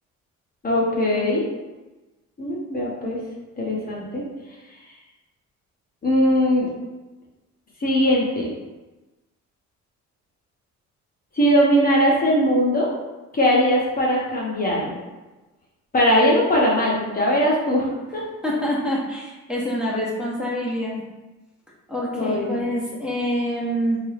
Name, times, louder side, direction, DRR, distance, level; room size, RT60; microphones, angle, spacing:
voice 1, 0.6-1.4 2.4-3.2 3.6-4.2 6.0-6.7 7.8-8.5 11.4-12.9 13.3-15.0 15.9-18.2 22.1-22.5, equal, 30° left, -4 dB, 0.9 m, -20 dB
voice 2, 18.4-21.0 21.9-24.0, equal, 5° right, -5 dB, 0.9 m, -26 dB
3.7 x 2.4 x 3.3 m, 1.1 s
cardioid pair, 90°, 30 cm